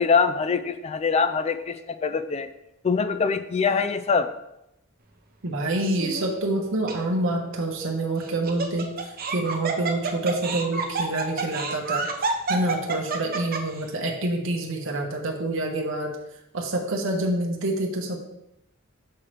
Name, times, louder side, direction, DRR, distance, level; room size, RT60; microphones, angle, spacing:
voice 1, 0.0-1.8 2.0-2.5 2.8-4.3, left 5 dB, 30° left, 10 dB, 0.4 m, -23 dB
voice 2, 5.4-16.2 16.5-18.2, right 2 dB, 65° right, 0 dB, 1.1 m, -27 dB
Laughter, 5.8-6.3 6.9-7.0 8.2-13.8, right 4 dB, 45° right, 0.7 m, -29 dB
6.6 x 3.2 x 5.8 m, 0.86 s
head